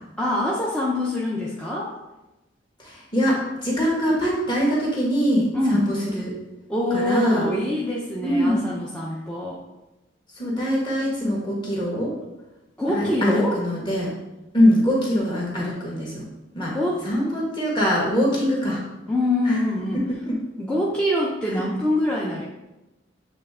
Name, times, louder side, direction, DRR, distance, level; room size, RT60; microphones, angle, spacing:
voice 1, 0.2-1.9 5.5-5.9 6.7-9.6 12.8-13.6 16.7-17.1 18.3-18.4 19.1-20.0 20.6-22.5, left 1 dB, 5° left, -6 dB, 0.7 m, -24 dB
voice 2, 2.8-6.3 6.9-7.5 8.2-8.6 10.4-12.1 12.9-14.1 14.5-16.2 16.5-16.7 17.0-18.8 19.4-19.6 20.3-20.4 21.5-21.6, equal, 25° left, -4 dB, 1.7 m, -23 dB
8.3 x 3.3 x 3.7 m, 1.0 s
head